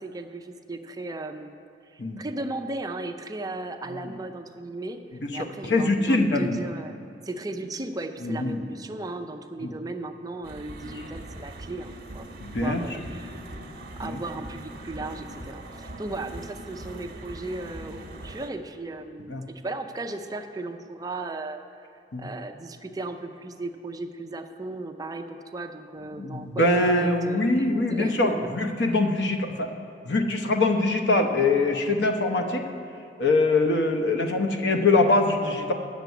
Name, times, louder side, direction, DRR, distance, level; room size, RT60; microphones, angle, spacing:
voice 1, 0.0-1.6 1.8-7.0 7.2-12.3 12.6-13.5 14.0-21.6 22.2-28.5, right 2 dB, 20° right, 6 dB, 0.5 m, -36 dB
voice 2, 5.2-6.6 8.2-8.6 9.6-9.7 12.4-12.8 14.0-14.2 19.3-19.4 22.1-22.3 26.2-29.7 30.0-32.6 33.2-35.7, left 2 dB, 70° left, 5 dB, 0.9 m, -23 dB
sound 1, 10.4-18.5, right 1 dB, 55° right, 1.1 m, -41 dB
9.3 x 6.7 x 8.2 m, 2.7 s
head